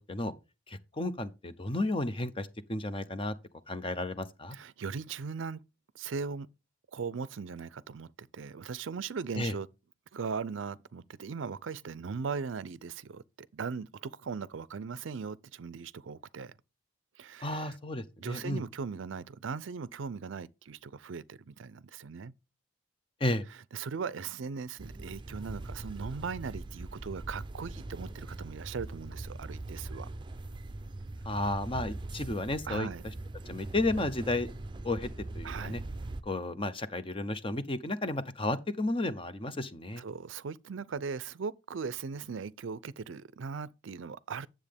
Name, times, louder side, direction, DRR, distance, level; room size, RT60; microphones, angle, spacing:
voice 1, 0.7-3.3 3.7-4.6 9.4-9.5 17.4-18.6 23.2-23.4 31.2-32.9 33.5-34.5 34.8-35.1 35.3-35.8 36.2-40.0, left 2 dB, 25° left, 0.7 m, -33 dB
voice 2, 4.5-5.6 5.9-6.5 6.9-9.7 10.1-16.6 17.2-17.8 18.2-22.3 23.7-30.1 32.7-33.0 35.4-35.8 40.0-44.5, right 5 dB, 80° right, 0.5 m, -39 dB
sound 1, 24.8-36.2, right 2 dB, 25° right, 0.6 m, -41 dB
9.7 x 7.5 x 3.5 m
head